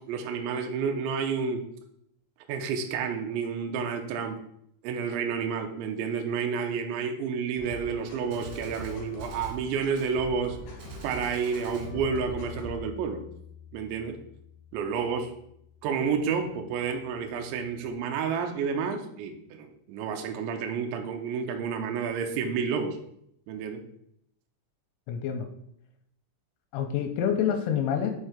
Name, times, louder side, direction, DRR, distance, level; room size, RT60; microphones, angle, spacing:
voice 1, 0.0-1.7 2.5-4.4 4.8-10.6 11.0-13.2 13.7-14.2 14.7-15.3 15.8-23.0 23.5-23.8, right 6 dB, 85° right, 4 dB, 2.8 m, -30 dB
sound 1, 7.6-12.8, left 1 dB, 50° left, 3.3 m, -42 dB
Gunshot gunfire, 7.7-7.8 8.3-9.6 10.0-10.1 10.8-11.9, right 2 dB, 60° right, 3.0 m, -48 dB
Bass guitar, 11.7-17.9, left 8 dB, 5° right, 1.7 m, -48 dB
voice 2, 25.1-25.5 26.7-28.1, left 8 dB, 85° left, 5 dB, 3.1 m, -27 dB
6.8 x 4.5 x 5.0 m, 0.73 s
omnidirectional pair, 5.8 m